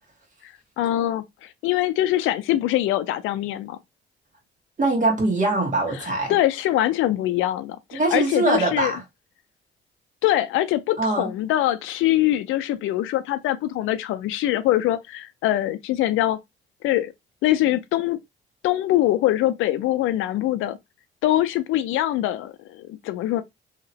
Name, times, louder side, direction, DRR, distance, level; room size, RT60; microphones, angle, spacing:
voice 1, 0.4-3.8 6.0-8.9 10.2-16.4 16.8-17.1 17.4-18.2 18.6-20.8 21.2-23.4, left 14 dB, 90° left, 0.4 m, -23 dB
voice 2, 4.8-6.3 7.9-9.0 11.0-11.3, right 2 dB, 40° right, 1.6 m, -22 dB
2.9 x 2.9 x 2.7 m
cardioid pair, 90°, 20 cm